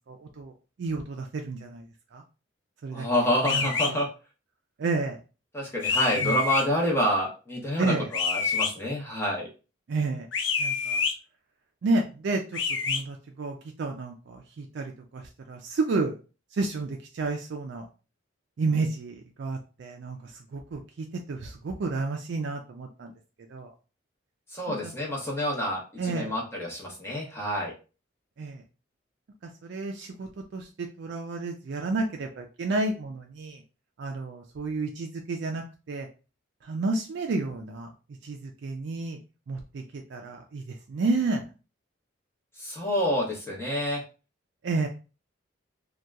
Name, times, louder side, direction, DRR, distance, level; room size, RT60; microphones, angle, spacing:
voice 1, 0.1-0.5 0.8-1.8 2.1-2.2 2.8-3.1 3.5-4.0 4.8-5.2 6.2-6.4 7.8-8.1 9.9-10.3 10.6-11.0 11.8-12.4 12.8-15.2 15.5-16.1 16.5-17.9 18.6-23.1 23.5-23.7 24.7-24.9 26.0-26.3 28.4-28.6 29.6-33.6 34.0-36.1 36.6-37.9 38.2-39.2 39.5-40.6 40.9-41.4 44.6-44.9, right 3 dB, 65° right, 3 dB, 0.3 m, -31 dB
voice 2, 2.9-4.1 5.5-9.5 24.5-27.7 42.6-44.0, equal, 15° left, -3 dB, 0.7 m, -28 dB
sound 1, 3.4-3.9 5.8-6.6 8.1-8.7 10.3-11.1 12.5-13.0, left 5 dB, 70° left, 0.4 m, -27 dB
2.7 x 2.2 x 2.3 m, 0.32 s
head